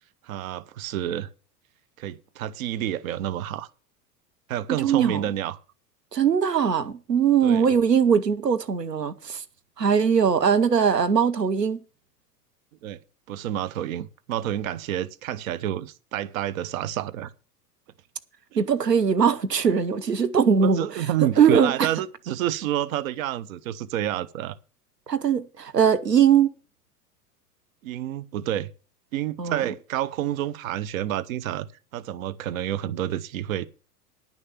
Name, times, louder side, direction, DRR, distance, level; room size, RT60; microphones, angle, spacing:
voice 1, 0.2-1.3 2.0-3.7 4.5-5.6 7.4-7.7 12.8-13.0 13.3-17.3 18.5-18.6 20.6-24.6 27.8-28.7 29.1-33.7, right 12 dB, 60° right, 0.8 m, -29 dB
voice 2, 4.8-5.3 6.1-9.4 9.8-11.8 18.6-21.1 21.4-21.9 25.1-26.5 29.4-29.6, right 7 dB, 85° right, 1.0 m, -21 dB
10.0 x 6.5 x 7.1 m
figure-of-eight pair, 85°, 47 cm